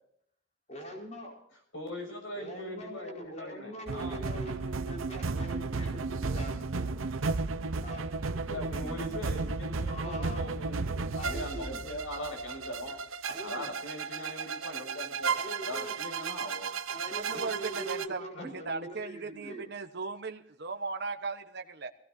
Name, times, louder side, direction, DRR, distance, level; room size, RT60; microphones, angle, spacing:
voice 1, 0.7-1.3 2.3-5.9 6.3-6.9 7.8-9.2 9.9-10.4 11.2-11.8 13.3-13.7 15.3-16.0 16.9-19.7, equal, 35° left, -1 dB, 4.9 m, -43 dB
voice 2, 1.7-4.2 8.5-13.0 13.4-15.4 15.6-16.7 17.3-17.4 18.3-18.5, equal, 75° left, 3 dB, 6.7 m, -41 dB
sound 1, 3.9-18.1, right 4 dB, 90° right, 0.8 m, -34 dB
voice 3, 17.2-21.9, right 4 dB, 55° right, 5 dB, 1.1 m, -37 dB
23.5 x 17.5 x 2.7 m, 0.67 s
head